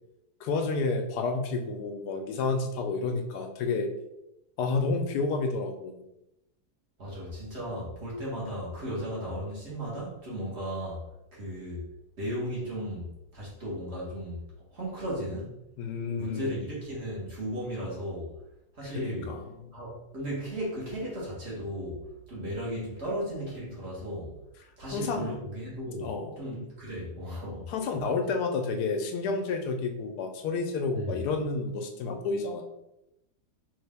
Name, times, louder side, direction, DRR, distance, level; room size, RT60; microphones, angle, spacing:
voice 1, 0.4-3.9 4.6-6.0 15.8-16.5 18.8-19.7 24.9-25.4 26.0-26.4 27.7-32.6, left 4 dB, 85° left, 5 dB, 1.2 m, -30 dB
voice 2, 7.0-11.0 11.3-11.8 12.2-13.1 13.3-14.4 14.7-15.5 16.2-18.3 18.8-19.3 19.7-22.0 22.3-24.3 24.8-26.1 26.4-27.7 30.9-31.2, equal, 45° right, -6 dB, 1.4 m, -35 dB
3.4 x 2.6 x 3.4 m, 0.88 s
omnidirectional pair, 1.7 m